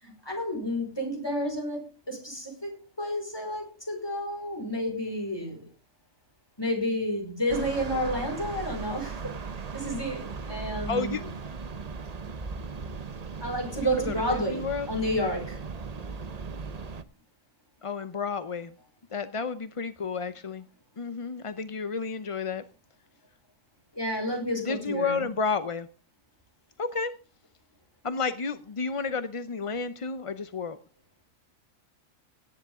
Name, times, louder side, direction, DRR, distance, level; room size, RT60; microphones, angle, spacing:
voice 1, 0.0-5.6 6.6-9.4 9.7-11.2 13.4-15.6 23.9-25.3, equal, 15° left, 2 dB, 5.2 m, -31 dB
sound 1, 7.5-17.0, right 5 dB, 35° right, 0.8 m, -37 dB
voice 2, 10.9-11.2 13.8-14.9 17.8-18.7 19.1-20.6 21.0-22.6 24.6-25.9 26.8-27.1 28.0-30.8, left 4 dB, 35° left, 12 dB, 0.5 m, -31 dB
17.5 x 10.5 x 3.6 m, 0.32 s
omnidirectional pair, 1.4 m